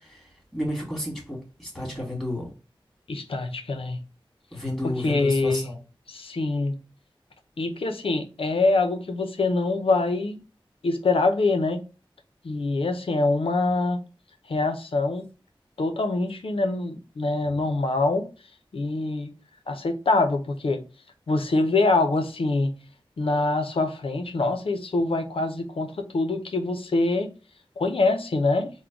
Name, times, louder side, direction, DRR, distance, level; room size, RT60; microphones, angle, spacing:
voice 1, 0.5-2.5 4.5-5.8, left 1 dB, 5° left, 2.2 m, -31 dB
voice 2, 3.1-4.0 5.0-5.7 6.1-6.7 7.6-10.4 10.8-11.8 12.4-14.0 14.5-15.2 15.8-18.3 18.7-19.3 19.7-20.8 21.3-22.7 23.2-27.3 27.8-28.7, left 3 dB, 90° left, 0.6 m, -24 dB
3.8 x 2.2 x 4.5 m
wide cardioid pair, 65°, 9 cm